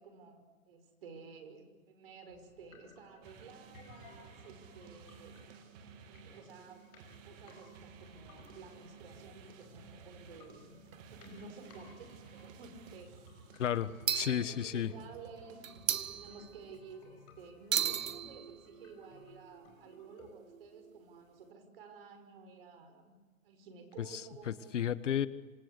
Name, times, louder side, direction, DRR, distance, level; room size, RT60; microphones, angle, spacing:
voice 1, 0.0-5.3 6.1-6.9 7.2-13.1 13.6-13.7 14.1-15.7 16.1-23.2 23.4-24.8, right 4 dB, 45° right, 7 dB, 5.8 m, -53 dB
sound 1, 2.3-20.3, left 6 dB, 30° left, 5.4 m, -61 dB
sound 2, 3.2-16.3, right 5 dB, 20° right, 2.0 m, -55 dB
sound 3, 6.6-7.7 8.4-8.5 8.7-8.8 10.3-10.4 10.9-11.3 11.6-11.8 12.5-13.0 14.1-15.2 15.6-16.9 17.7-21.5, right 9 dB, 70° right, 1.6 m, -39 dB
voice 2, 13.6-14.9 24.5-25.3, left 9 dB, 60° left, 15 dB, 1.3 m, -32 dB
26.5 x 26.5 x 8.2 m, 1.3 s
hypercardioid pair, 165°, 41 cm